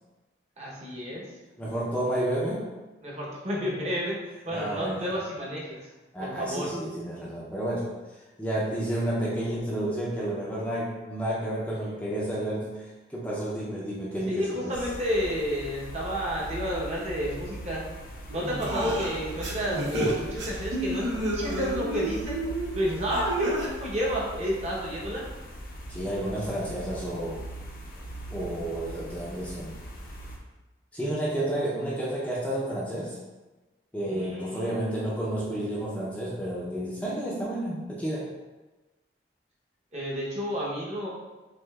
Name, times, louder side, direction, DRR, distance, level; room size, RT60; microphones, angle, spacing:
voice 1, 0.6-1.2 3.0-5.8 6.2-6.7 14.3-17.9 18.3-22.4 22.7-25.2 34.1-34.8 39.9-41.1, equal, 35° right, -5 dB, 0.9 m, -31 dB
voice 2, 1.6-2.7 4.5-5.1 6.1-14.8 25.9-27.4 28.3-29.8 30.9-33.2 33.9-38.3, right 1 dB, 5° left, -7 dB, 0.5 m, -31 dB
sound 1, 14.7-30.4, right 1 dB, 50° left, 0.6 m, -40 dB
sound 2, 18.3-23.7, right 1 dB, 85° right, 0.8 m, -31 dB
6.2 x 2.5 x 2.3 m, 1.2 s
head